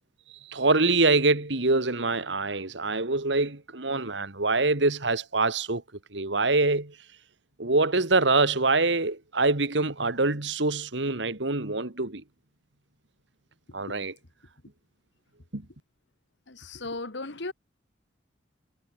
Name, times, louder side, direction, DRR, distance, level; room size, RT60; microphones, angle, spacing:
voice 1, 0.4-5.8 6.1-7.0 7.6-12.2 13.7-14.2 15.5-15.7, right 3 dB, 70° right, 2.1 m, -25 dB
voice 2, 16.5-17.5, left 2 dB, 65° left, 1.8 m, -36 dB
head